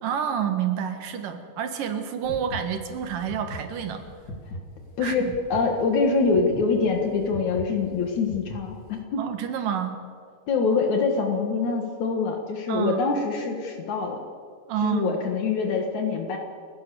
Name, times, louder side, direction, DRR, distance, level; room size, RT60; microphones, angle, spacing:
voice 1, 0.0-4.0 5.0-5.3 9.2-10.0 12.7-13.1 14.7-15.2, right 8 dB, 75° right, 7 dB, 3.3 m, -28 dB
sound 1, 2.2-9.0, left 1 dB, 35° left, 2.6 m, -40 dB
voice 2, 5.0-9.2 10.5-14.2 14.8-16.4, left 4 dB, 65° left, 3 dB, 2.9 m, -25 dB
29.5 x 16.0 x 7.0 m, 2.2 s
omnidirectional pair, 3.8 m